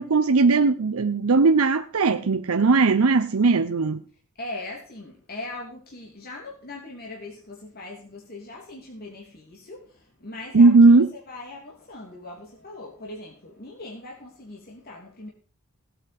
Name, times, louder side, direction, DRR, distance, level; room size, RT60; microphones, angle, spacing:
voice 1, 0.0-4.0 10.5-11.1, right 3 dB, 80° right, 0.7 m, -18 dB
voice 2, 4.3-15.3, left 2 dB, 45° left, 3.0 m, -40 dB
17.0 x 8.7 x 5.3 m
head